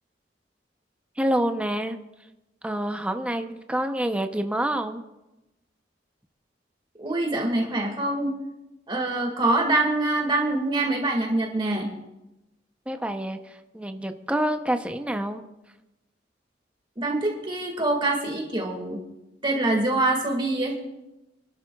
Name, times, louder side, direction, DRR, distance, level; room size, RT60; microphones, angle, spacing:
voice 1, 1.2-2.0 2.6-5.0 12.9-15.4, right 1 dB, 5° right, 6 dB, 0.6 m, -27 dB
voice 2, 7.0-8.3 8.9-11.9 17.0-19.0 19.4-20.8, right 2 dB, 25° right, 0 dB, 1.9 m, -25 dB
27.0 x 12.5 x 2.3 m, 0.98 s
head